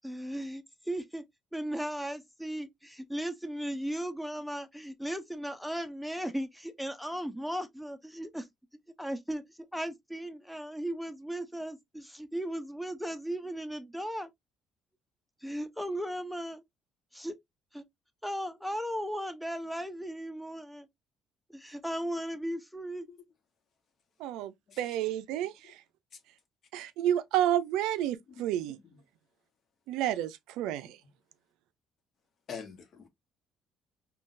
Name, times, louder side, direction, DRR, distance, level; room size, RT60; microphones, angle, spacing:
voice 1, 0.0-1.2 1.5-8.5 9.0-14.3 15.4-16.6 17.1-17.4 17.7-17.8 18.2-20.9 21.5-23.1, equal, ahead, 0.6 m, -36 dB
voice 2, 24.2-25.7 26.7-28.8 29.9-31.0, right 12 dB, 85° right, 0.4 m, -30 dB
voice 3, 25.3-25.8 28.3-28.4 28.7-29.0 30.8-30.9 32.5-33.1, left 6 dB, 55° left, 1.0 m, -47 dB
3.7 x 2.3 x 2.4 m
supercardioid pair, 85°, 0 cm